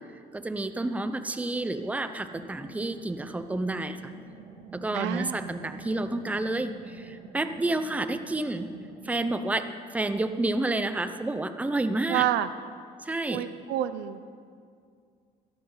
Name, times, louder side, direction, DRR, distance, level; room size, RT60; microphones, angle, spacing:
voice 1, 0.3-4.1 4.7-8.7 9.0-12.3 13.0-13.4, right 2 dB, 10° right, 10 dB, 0.6 m, -30 dB
sound 1, 2.1-9.3, right 5 dB, 55° right, 2.3 m, -47 dB
voice 2, 4.9-5.5 12.1-12.5 13.3-14.2, right 12 dB, 85° right, 13 dB, 0.6 m, -28 dB
17.0 x 13.0 x 3.9 m, 2.2 s
cardioid pair, 110°, 17 cm